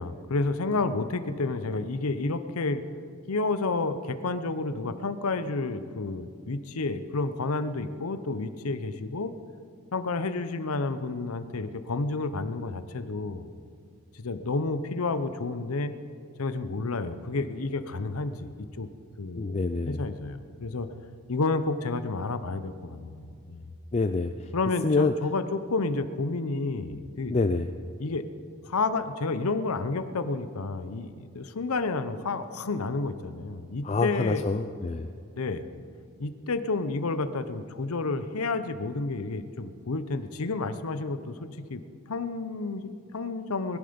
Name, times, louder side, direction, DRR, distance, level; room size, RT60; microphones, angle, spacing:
voice 1, 0.0-2.8 3.3-9.3 9.9-13.5 14.1-15.9 16.4-18.5 18.8-18.9 19.2-20.9 21.3-23.7 24.5-27.4 28.0-28.2 28.6-34.4 35.4-35.6 36.2-41.8 42.1-43.8, left 3 dB, 80° left, 11 dB, 0.8 m, -30 dB
voice 2, 19.4-20.0 23.9-24.3 24.8-25.1 27.3-27.7 33.8-35.1, left 3 dB, 30° left, 8 dB, 0.4 m, -26 dB
21.0 x 11.5 x 5.2 m, 2.5 s
head